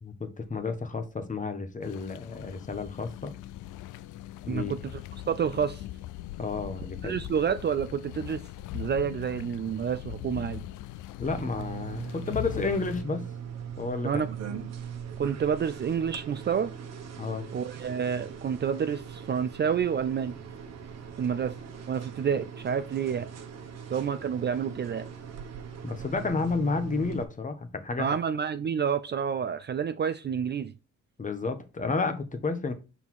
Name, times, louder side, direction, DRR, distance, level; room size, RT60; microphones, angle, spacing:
voice 1, 0.0-3.3 4.5-4.7 6.4-7.2 11.2-13.3 13.8-14.1 14.5-14.6 17.2-17.5 25.8-28.1 31.2-32.7, left 4 dB, 25° left, 1.1 m, -31 dB
sound 1, 1.8-13.0, left 14 dB, 80° left, 0.5 m, -41 dB
voice 2, 4.5-4.8 5.3-5.8 7.0-8.4 8.7-10.7 14.0-14.3 15.2-16.7 17.5-20.4 21.2-21.5 21.9-23.3 23.9-25.1 28.0-30.7, right 7 dB, 35° right, 0.4 m, -29 dB
sound 2, 11.2-27.2, right 7 dB, 60° right, 1.2 m, -40 dB
5.5 x 4.1 x 4.5 m
cardioid pair, 90°, 30 cm